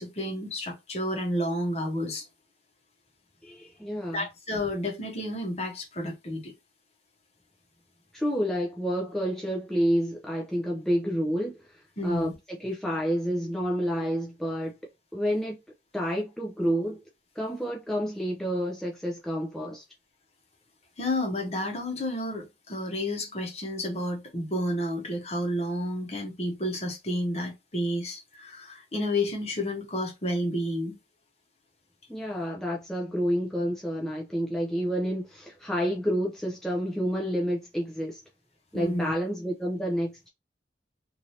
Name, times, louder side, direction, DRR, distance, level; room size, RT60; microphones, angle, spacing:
voice 1, 0.0-2.3 4.1-6.5 12.0-12.4 21.0-30.9 38.7-39.1, left 1 dB, 35° left, 1.0 m, -31 dB
voice 2, 3.4-4.3 8.1-14.7 15.1-15.6 15.9-17.0 17.4-19.8 32.1-38.2 38.7-40.3, equal, 5° left, 0.4 m, -29 dB
3.1 x 2.6 x 2.7 m
head